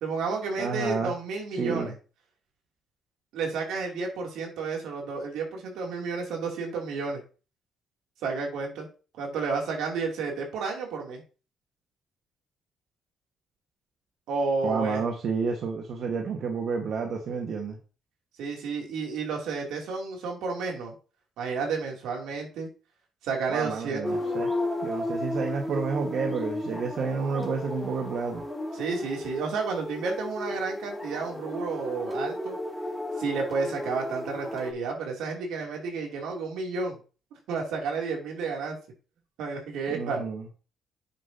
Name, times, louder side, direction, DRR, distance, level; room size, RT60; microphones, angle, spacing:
voice 1, 0.0-1.9 3.3-7.2 8.2-8.9 9.2-11.2 14.3-15.0 18.4-20.9 21.4-22.7 23.2-24.0 28.7-32.6 33.2-36.9 37.5-38.8 39.4-40.3, right 4 dB, 85° right, 0 dB, 2.9 m, -31 dB
voice 2, 0.6-1.1 1.6-1.9 14.6-17.8 23.5-24.5 24.8-28.4 39.9-40.5, right 5 dB, 65° right, 2 dB, 1.5 m, -30 dB
sound 1, 24.0-34.7, left 1 dB, 10° left, 2.5 m, -34 dB
10.0 x 6.7 x 2.9 m, 0.35 s
cardioid pair, 90°, 0 cm